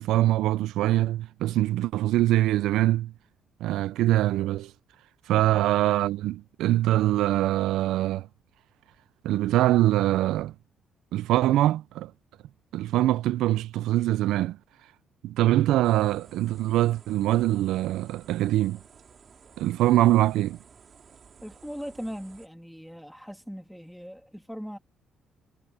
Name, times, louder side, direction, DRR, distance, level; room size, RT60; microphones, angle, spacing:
voice 1, 0.0-3.1 3.6-4.7 5.3-8.3 9.2-10.5 11.1-12.1 12.7-14.6 15.2-18.8 19.6-20.6, right 15 dB, 90° right, 0.4 m, -23 dB
sound 1, 15.8-22.5, right 6 dB, 50° right, 3.8 m, -54 dB
voice 2, 21.4-24.8, equal, ahead, 3.0 m, -39 dB
cardioid pair, 90°, 0 cm